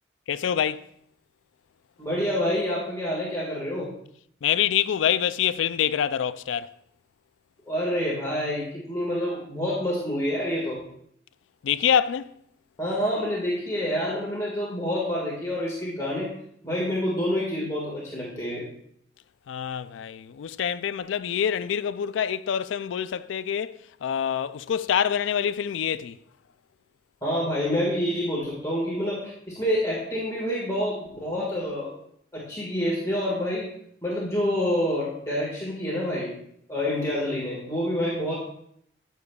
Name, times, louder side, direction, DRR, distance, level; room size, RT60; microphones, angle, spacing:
voice 1, 0.3-0.9 4.4-6.7 11.6-12.3 19.5-26.2, left 9 dB, 80° left, 0.3 m, -26 dB
voice 2, 2.0-3.9 7.7-10.8 12.8-16.3 16.6-18.7 27.2-31.9 32.3-33.7 34.0-36.4 36.7-38.3, equal, 15° left, 1.7 m, -27 dB
14.5 x 6.8 x 2.3 m
head